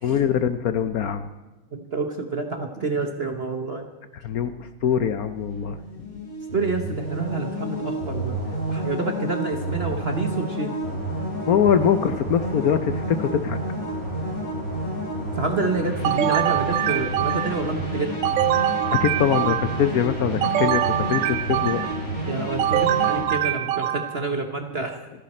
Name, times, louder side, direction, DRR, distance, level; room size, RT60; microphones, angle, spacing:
voice 1, 0.0-1.3 4.2-5.8 11.4-13.6 19.0-20.8 21.1-21.8, left 8 dB, 65° left, 10 dB, 1.0 m, -23 dB
voice 2, 1.7-3.9 6.5-8.4 8.7-10.8 15.4-18.2 22.3-25.0, right 3 dB, 40° right, 5 dB, 1.1 m, -28 dB
sound 1, 5.5-23.2, right 1 dB, 45° left, 6.0 m, -30 dB
sound 2, 16.0-17.7 18.2-19.9 20.4-22.1 22.6-24.3, right 12 dB, 70° right, 1.2 m, -24 dB
28.0 x 10.5 x 4.3 m, 1.2 s
omnidirectional pair, 2.1 m